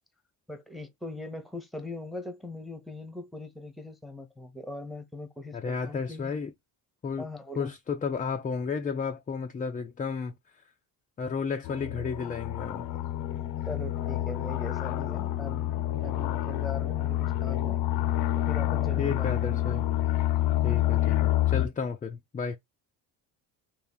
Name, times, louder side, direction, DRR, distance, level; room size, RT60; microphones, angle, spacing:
voice 1, 0.5-6.3 7.2-7.7 13.6-17.8 18.4-19.8, left 2 dB, ahead, 0.8 m, -41 dB
voice 2, 5.5-6.5 7.0-7.3 7.6-10.3 11.2-12.9 19.0-19.8 20.6-22.6, left 5 dB, 20° left, 0.4 m, -32 dB
sound 1, 11.6-21.7, left 14 dB, 80° left, 0.8 m, -28 dB
3.6 x 2.4 x 4.2 m
cardioid pair, 125°, 41 cm